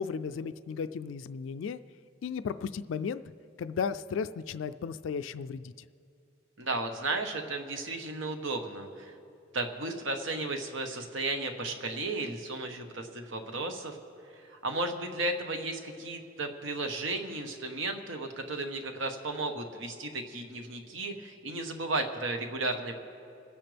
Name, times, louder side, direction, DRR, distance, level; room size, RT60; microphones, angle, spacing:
voice 1, 0.0-1.8 2.2-3.2 3.6-5.7, left 6 dB, 80° left, 12 dB, 0.3 m, -34 dB
voice 2, 6.6-9.1 9.5-14.0 14.5-23.0, right 2 dB, 80° right, 5 dB, 1.3 m, -34 dB
27.5 x 10.0 x 3.4 m, 2.5 s
head